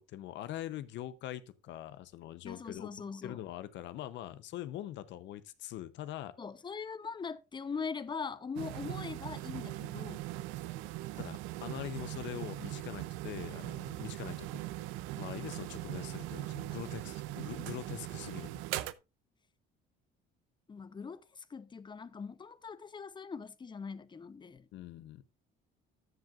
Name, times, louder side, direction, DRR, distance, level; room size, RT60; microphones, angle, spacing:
voice 1, 0.0-2.9 3.2-6.3 8.6-8.7 11.2-14.5 15.2-18.5 24.7-25.2, left 13 dB, 70° left, 0.8 m, -43 dB
voice 2, 2.4-3.4 6.4-10.2 20.7-24.7, left 5 dB, 25° left, 0.7 m, -41 dB
sound 1, 8.6-18.9, right 16 dB, 85° right, 0.6 m, -40 dB
13.5 x 7.6 x 2.5 m
cardioid pair, 100°, 20 cm